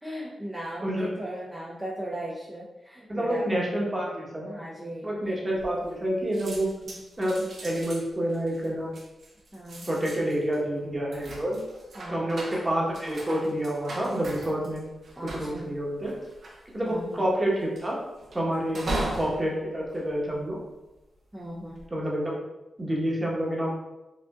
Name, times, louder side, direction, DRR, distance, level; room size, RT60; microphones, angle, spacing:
voice 1, 0.0-3.9 4.4-5.5 6.9-7.0 9.5-9.9 12.0-12.5 15.2-15.8 16.8-17.2 18.7-19.3 21.3-21.9, equal, 10° right, -7 dB, 0.7 m, -38 dB
voice 2, 3.1-4.5 5.0-6.7 7.2-8.9 9.9-11.6 12.1-14.8 15.2-16.1 16.7-18.0 18.3-18.8 19.1-20.6 21.9-22.4 22.8-23.7, right 1 dB, 25° right, -3 dB, 1.2 m, -28 dB
sound 1, 5.5-6.1 6.3-20.9 21.4-21.9, right 1 dB, 70° right, 0.8 m, -39 dB
5.0 x 2.5 x 2.4 m, 1.0 s
cardioid pair, 60°, 0 cm